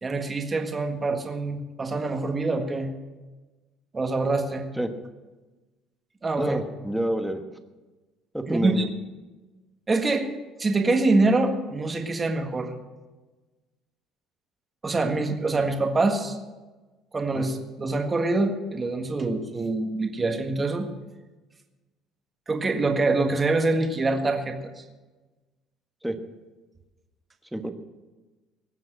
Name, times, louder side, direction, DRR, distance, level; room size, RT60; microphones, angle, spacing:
voice 1, 0.0-2.9 3.9-4.7 6.2-6.6 8.5-8.8 9.9-10.3 10.6-12.7 14.8-16.4 17.1-20.9 22.5-24.6, right 3 dB, 20° right, 4 dB, 1.7 m, -25 dB
voice 2, 6.4-7.4 8.3-8.9 17.3-17.5 26.0-26.2 27.5-27.7, right 1 dB, ahead, 6 dB, 1.3 m, -28 dB
19.5 x 7.6 x 7.7 m, 1.2 s
cardioid pair, 135°, 0 cm